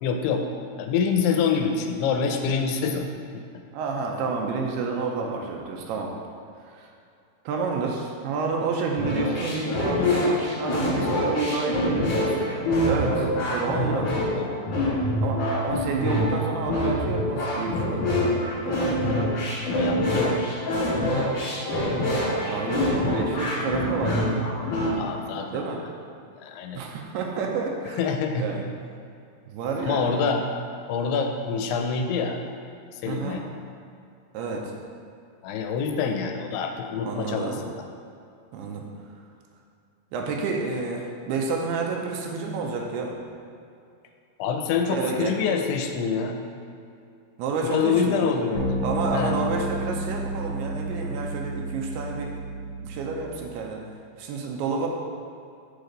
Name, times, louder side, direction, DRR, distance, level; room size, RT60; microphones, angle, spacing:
voice 1, 0.0-0.5 0.8-3.1 3.3-3.4 13.9-14.6 19.7-20.4 25.0-25.6 26.4-26.8 28.0-28.5 29.8-30.4 30.9-32.4 32.9-33.4 35.4-37.8 44.4-46.4 47.6-48.8 49.1-49.4, left 6 dB, 85° left, 4 dB, 2.6 m, -26 dB
voice 2, 3.7-6.1 6.7-6.9 7.5-14.2 15.2-18.1 18.6-19.1 22.0-24.4 25.5-25.8 26.7-28.1 28.4-28.6 29.5-30.1 33.1-33.4 34.3-34.7 37.0-37.6 38.5-38.9 40.1-43.2 44.9-45.4 47.4-48.3 48.8-53.8 54.2-54.9, right 4 dB, 85° right, 0 dB, 2.6 m, -29 dB
sound 1, 9.0-24.9, left 1 dB, 60° left, 2.8 m, -25 dB
sound 2, 48.5-53.3, right 1 dB, 60° right, 1.5 m, -31 dB
6.8 x 4.9 x 3.9 m, 2.5 s
omnidirectional pair, 4.6 m